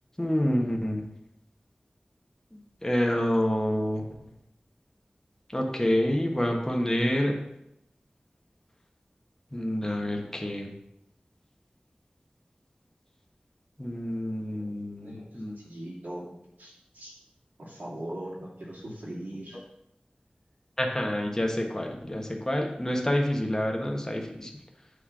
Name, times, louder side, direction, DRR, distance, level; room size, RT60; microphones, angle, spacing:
voice 1, 0.2-1.0 2.8-4.0 5.5-7.3 9.5-10.7 13.8-15.6 20.8-24.5, left 1 dB, 15° left, 1 dB, 1.3 m, -27 dB
voice 2, 14.5-17.1 17.6-19.6, right 1 dB, 85° right, -6 dB, 2.6 m, -41 dB
8.0 x 3.4 x 6.1 m, 0.82 s
wide cardioid pair, 55°, 3 cm